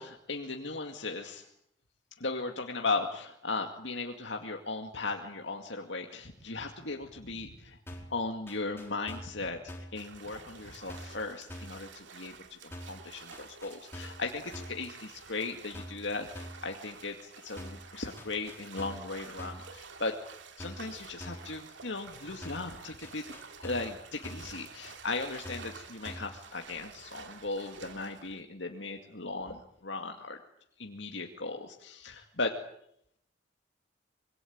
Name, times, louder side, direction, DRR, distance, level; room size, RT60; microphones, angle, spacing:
voice 1, 0.0-1.5 2.2-7.8 8.1-20.1 20.6-23.2 23.6-30.4 30.8-32.6, left 3 dB, 65° left, 3 dB, 2.2 m, -37 dB
sound 1, 7.9-8.2 8.5-9.4 9.7-10.0 10.9-11.2 11.5-11.8 12.7-13.0 13.3-14.3 14.5-14.9 15.7-16.1 16.4-16.7 17.6-17.9 18.2-19.1 19.4-19.7 20.6-20.9 21.2-21.5 22.4-22.7 23.0-24.0 24.2-24.6 25.4-25.8 26.1-26.4, equal, 15° left, 4.7 m, -45 dB
sound 2, 10.0-28.4, right 5 dB, 65° right, 2.7 m, -50 dB
26.0 x 23.5 x 8.7 m, 0.74 s
head